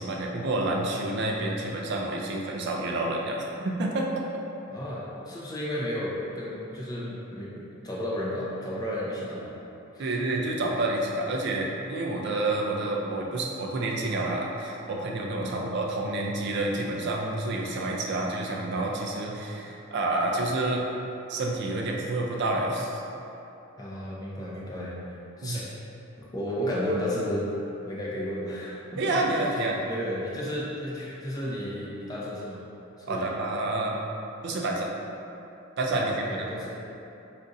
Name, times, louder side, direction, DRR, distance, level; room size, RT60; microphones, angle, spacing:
voice 1, 0.0-4.2 10.0-20.8 21.3-23.0 25.4-25.6 29.0-29.8 33.1-34.0 34.4-34.9 35.8-36.3, right 2 dB, 55° right, -1 dB, 0.4 m, -29 dB
voice 2, 4.7-9.5 9.9-10.1 15.4-15.6 23.8-24.9 25.4-25.7 26.2-27.4 27.9-29.2 29.8-32.6 33.1-33.3 35.9-36.8, left 1 dB, 20° left, -6 dB, 0.5 m, -33 dB
2.5 x 2.4 x 3.9 m, 2.8 s
head